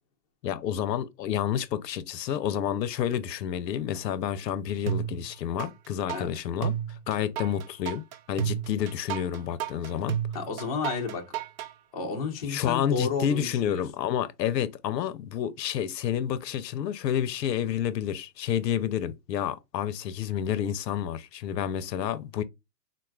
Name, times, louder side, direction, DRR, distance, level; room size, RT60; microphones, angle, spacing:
voice 1, 0.4-10.2 12.5-22.4, left 9 dB, 80° left, 0.6 m, -29 dB
sound 1, 4.9-5.7 6.1-11.7, right 9 dB, 60° right, 0.6 m, -32 dB
voice 2, 10.3-11.3 11.9-13.8, left 5 dB, 25° left, 0.4 m, -31 dB
3.8 x 2.3 x 2.3 m
hypercardioid pair, 135°, 49 cm